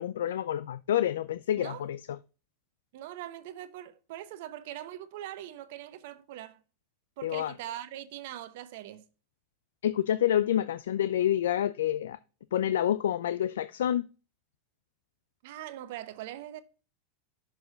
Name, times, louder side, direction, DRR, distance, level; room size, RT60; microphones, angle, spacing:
voice 1, 0.0-2.0 7.2-7.5 9.8-12.2 12.5-14.1, left 11 dB, 85° left, 0.4 m, -28 dB
voice 2, 1.6-1.9 2.9-6.6 7.2-9.0 15.4-16.6, right 12 dB, 65° right, 0.9 m, -42 dB
6.6 x 4.7 x 4.9 m
supercardioid pair, 125°, 0 cm